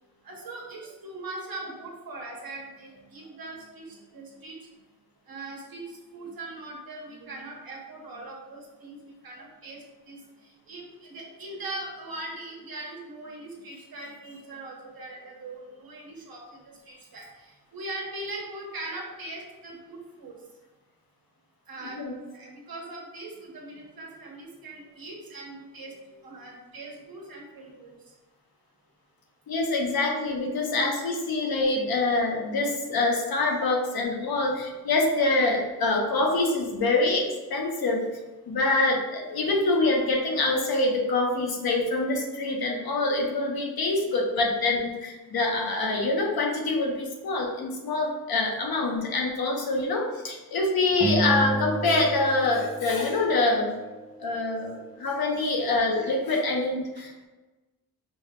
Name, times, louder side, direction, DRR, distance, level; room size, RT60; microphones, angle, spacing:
voice 1, 0.2-4.6 5.3-20.3 21.7-27.9 32.0-32.3 57.0-57.1, right 2 dB, 75° right, -1 dB, 1.2 m, -41 dB
voice 2, 29.5-38.1 38.5-53.8 54.2-57.3, left 2 dB, 80° left, 0 dB, 0.9 m, -25 dB
sound 1, 51.0-53.6, right 1 dB, 5° left, 0.7 m, -30 dB
5.1 x 2.2 x 3.6 m, 1.2 s
wide cardioid pair, 110°, 36 cm